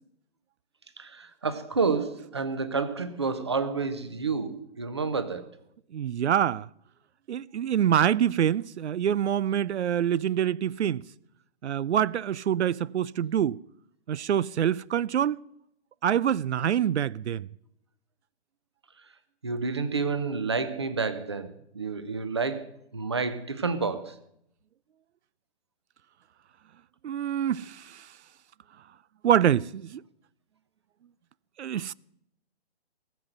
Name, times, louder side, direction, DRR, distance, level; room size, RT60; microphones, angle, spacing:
voice 1, 1.0-5.4 19.4-24.1, right 4 dB, 25° right, 0.7 m, -29 dB
voice 2, 5.9-6.7 7.3-11.1 11.6-13.6 14.1-15.4 16.0-17.5 27.0-28.1 29.2-30.0 31.6-31.9, right 9 dB, 85° right, 0.5 m, -25 dB
19.0 x 7.5 x 7.8 m
hypercardioid pair, 180°, 33 cm